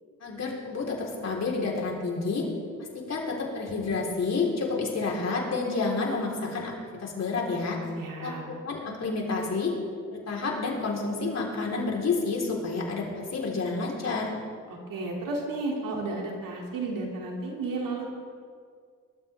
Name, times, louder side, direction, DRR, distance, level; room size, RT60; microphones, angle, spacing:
voice 1, 0.2-2.5 2.8-6.7 7.0-7.8 8.2-9.8 10.1-14.4, left 4 dB, 50° left, -2 dB, 4.2 m, -29 dB
voice 2, 7.9-8.4 14.9-18.1, right 3 dB, 75° right, -1 dB, 2.9 m, -32 dB
21.5 x 12.5 x 3.6 m, 2.1 s
cardioid pair, 70°, 33 cm